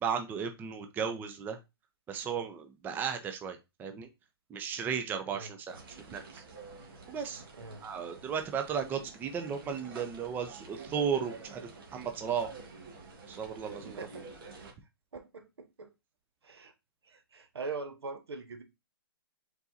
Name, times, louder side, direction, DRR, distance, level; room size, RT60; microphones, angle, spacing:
voice 1, 0.0-1.6 2.1-4.1 4.5-5.8 6.1-6.4 7.1-7.4 7.8-12.5 13.3-14.0, right 7 dB, 15° right, 0.5 m, -35 dB
sound 1, 5.7-14.7, right 4 dB, 60° right, 1.6 m, -49 dB
voice 2, 14.0-14.3 15.1-15.9 16.4-16.7 17.0-18.6, right 4 dB, 90° right, 1.0 m, -42 dB
4.6 x 4.0 x 2.7 m
hypercardioid pair, 140°, 13 cm